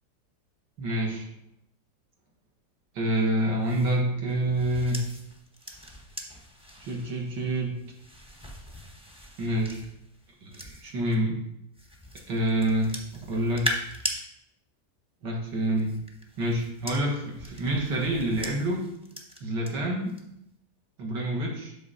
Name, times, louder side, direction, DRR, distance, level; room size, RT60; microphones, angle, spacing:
voice 1, 0.8-1.3 2.9-5.1 6.8-7.8 9.4-9.8 10.4-11.4 12.3-12.9 13.3-13.7 15.2-16.0 16.4-18.9 19.4-20.2 21.0-21.7, right 1 dB, 80° right, -1 dB, 2.2 m, -27 dB
sound 1, 3.6-11.2 11.7-14.2 15.5-19.7 20.1-20.4, equal, 5° right, 0.5 m, -40 dB
7.9 x 5.6 x 3.9 m, 0.79 s
omnidirectional pair, 1.9 m